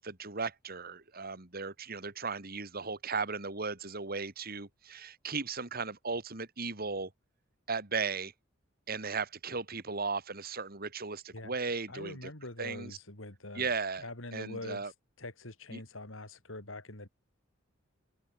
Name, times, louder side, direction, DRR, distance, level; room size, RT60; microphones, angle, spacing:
voice 1, 0.0-7.1 7.7-8.3 8.9-12.3 12.6-13.0 13.5-14.1 14.3-14.9 15.7-15.8, right 4 dB, 50° right, 2.6 m, -36 dB
voice 2, 11.9-13.7 14.0-14.9 15.2-17.1, left 2 dB, 80° left, 5.9 m, -44 dB
open air
head